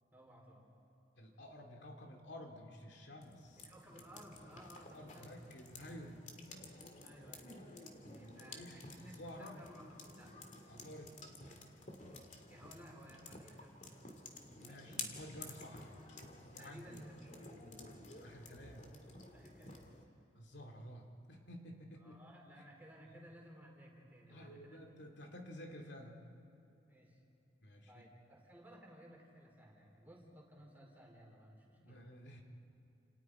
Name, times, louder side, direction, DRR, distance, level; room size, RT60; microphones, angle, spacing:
voice 1, 0.1-0.7 3.6-5.4 7.0-7.5 8.1-10.3 12.5-14.0 14.7-15.1 16.6-17.5 19.3-19.8 22.0-24.8 26.9-27.2 27.9-32.0, equal, 10° right, -1 dB, 4.0 m, -57 dB
voice 2, 1.2-3.7 4.9-6.2 8.0-9.6 10.7-11.2 14.6-16.8 18.2-18.9 20.3-22.2 22.5-22.7 23.1-23.3 24.3-26.2 27.6-28.0 31.8-32.4, equal, 80° left, 2 dB, 2.4 m, -52 dB
sound 1, 3.2-20.0, left 3 dB, 40° left, 2.3 m, -52 dB
30.0 x 28.5 x 4.8 m, 2.9 s
head